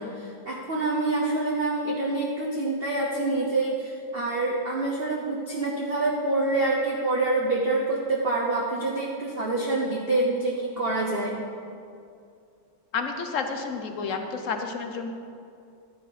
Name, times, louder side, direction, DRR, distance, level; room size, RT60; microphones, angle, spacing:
voice 1, 0.0-11.4, right 2 dB, 40° right, -3 dB, 1.0 m, -26 dB
voice 2, 12.9-15.1, left 5 dB, 60° left, 5 dB, 0.9 m, -30 dB
12.5 x 9.9 x 4.2 m, 2.4 s
omnidirectional pair, 2.1 m